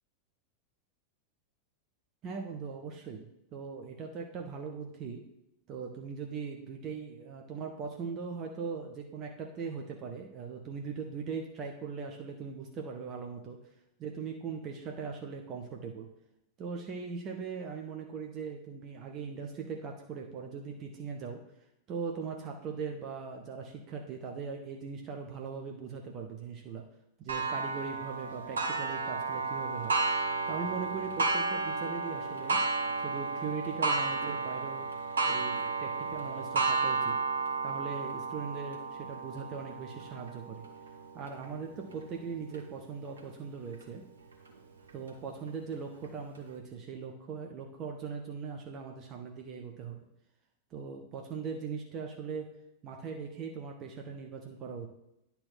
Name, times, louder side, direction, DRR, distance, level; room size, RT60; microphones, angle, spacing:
voice 1, 2.2-5.2 5.7-13.6 14.0-16.1 16.6-21.4 21.9-26.8 27.2-29.9 30.5-32.6 33.0-34.9 35.3-37.2 37.6-40.6 41.1-44.0 44.9-50.0 50.7-52.5 52.8-54.9, right 5 dB, 35° right, 2 dB, 1.0 m, -40 dB
Clock, 27.3-42.6 43.2-43.3 43.8-43.9 44.9-45.0, right 4 dB, 70° right, 1.1 m, -33 dB
9.9 x 4.5 x 5.7 m, 0.83 s
figure-of-eight pair, 90°, 0 cm